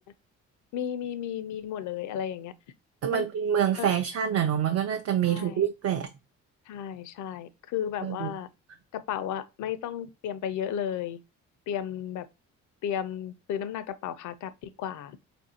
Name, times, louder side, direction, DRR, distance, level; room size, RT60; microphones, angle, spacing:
voice 1, 0.7-2.5 3.1-3.3 3.8-3.9 5.2-5.7 6.7-8.5 8.9-11.2 11.7-12.3 12.8-15.2, left 9 dB, 75° left, 0.5 m, -33 dB
voice 2, 3.0-6.1 8.0-8.3, right 9 dB, 55° right, 0.5 m, -26 dB
4.3 x 2.5 x 2.7 m
cardioid pair, 90°, 30 cm